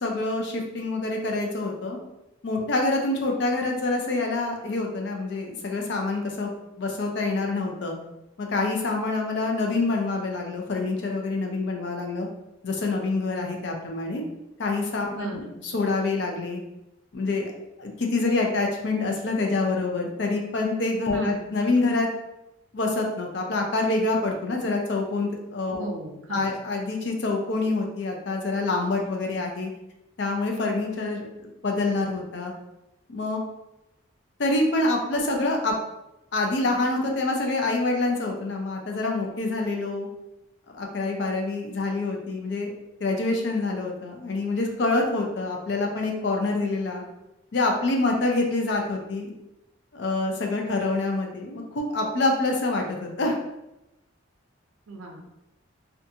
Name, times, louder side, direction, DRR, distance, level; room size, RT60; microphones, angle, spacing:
voice 1, 0.0-2.0 2.4-8.0 8.4-12.3 12.6-14.2 14.6-16.6 17.1-17.5 17.8-22.1 22.7-25.9 26.3-29.7 30.2-32.5 33.1-33.4 34.4-35.7 36.3-40.1 40.7-42.7 43.0-47.0 47.5-49.3 49.9-53.4, left 2 dB, 55° left, 1 dB, 0.4 m, -26 dB
voice 2, 15.1-15.6 21.1-21.4 25.8-26.5 54.9-55.3, right 3 dB, 90° right, 1 dB, 0.5 m, -35 dB
2.5 x 2.2 x 2.7 m, 0.92 s
head